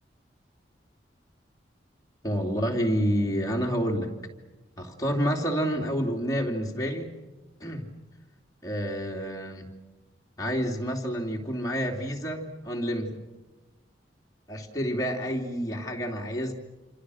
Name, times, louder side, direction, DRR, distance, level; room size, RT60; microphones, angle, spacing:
voice 1, 2.2-4.1 4.8-7.1 7.6-7.9 8.6-9.7 10.4-13.2 14.5-16.5, equal, 20° left, 0 dB, 2.9 m, -29 dB
28.0 x 26.5 x 6.4 m, 1.2 s
head